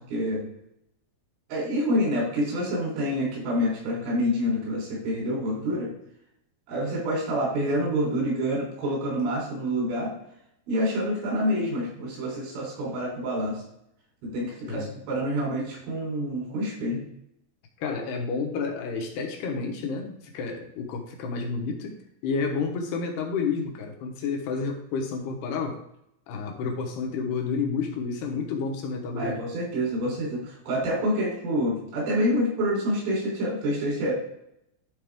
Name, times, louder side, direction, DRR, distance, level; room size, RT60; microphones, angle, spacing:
voice 1, 0.1-0.4 1.5-5.9 6.7-10.1 10.7-13.6 14.2-17.0 29.2-34.1, equal, 90° right, -3 dB, 5.9 m, -27 dB
voice 2, 17.8-21.9 22.2-25.8 26.3-29.5, left 5 dB, 70° left, 1 dB, 2.7 m, -30 dB
12.0 x 4.2 x 3.5 m, 0.76 s
omnidirectional pair, 5.5 m